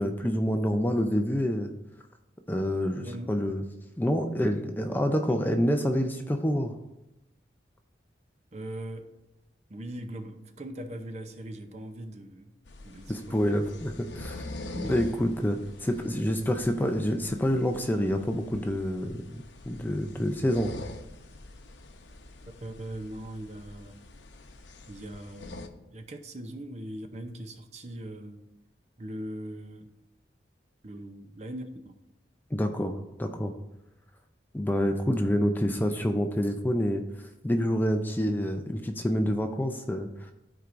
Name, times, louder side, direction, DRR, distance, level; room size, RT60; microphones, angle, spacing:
voice 1, 0.0-1.7 2.5-3.6 4.0-6.7 13.1-14.4 14.7-20.7 32.5-33.5 34.5-37.0 37.4-40.3, equal, 10° left, 5 dB, 0.5 m, -27 dB
voice 2, 3.0-3.4 5.3-5.4 8.5-9.1 9.7-12.5 12.8-13.9 14.7-15.2 16.1-16.6 22.6-24.0 24.9-28.4 29.0-29.9 30.8-31.9, right 1 dB, 40° right, 7 dB, 0.6 m, -40 dB
sound 1, 12.7-25.7, left 2 dB, 85° left, 0.7 m, -45 dB
13.0 x 4.7 x 2.6 m, 0.94 s
head